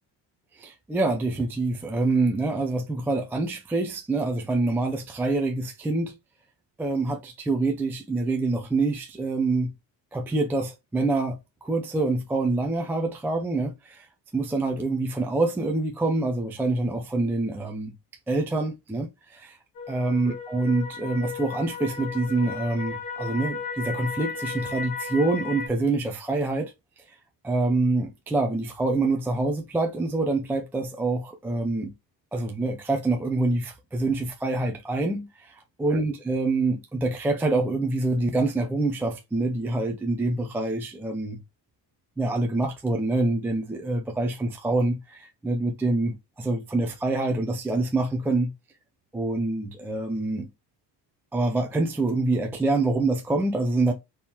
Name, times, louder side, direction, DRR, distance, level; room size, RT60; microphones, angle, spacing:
voice 1, 0.5-6.1 6.8-9.7 10.1-14.1 14.3-17.9 18.3-19.6 19.9-26.7 27.4-31.9 32.3-41.4 42.2-48.5 49.1-50.5 51.3-53.9, right 2 dB, 5° right, 0.4 m, -26 dB
sound 1, 19.7-25.7, left 4 dB, 60° left, 1.9 m, -35 dB
4.4 x 3.6 x 2.8 m
cardioid pair, 170°, 41 cm